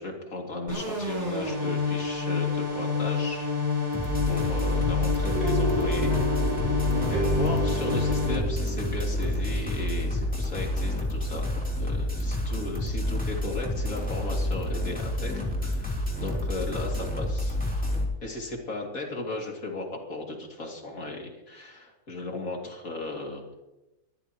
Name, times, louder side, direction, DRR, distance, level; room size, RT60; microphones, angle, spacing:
voice 1, 0.0-3.5 4.3-6.1 6.6-11.4 11.8-17.6 18.2-23.4, left 2 dB, 65° left, 0 dB, 3.1 m, -36 dB
sound 1, 0.7-8.4, left 4 dB, 45° right, 4.5 m, -28 dB
sound 2, 3.9-18.0, left 1 dB, 5° left, 3.3 m, -29 dB
sound 3, 5.3-11.5, right 2 dB, 75° right, 2.6 m, -33 dB
23.5 x 13.5 x 3.1 m, 0.99 s
omnidirectional pair, 1.6 m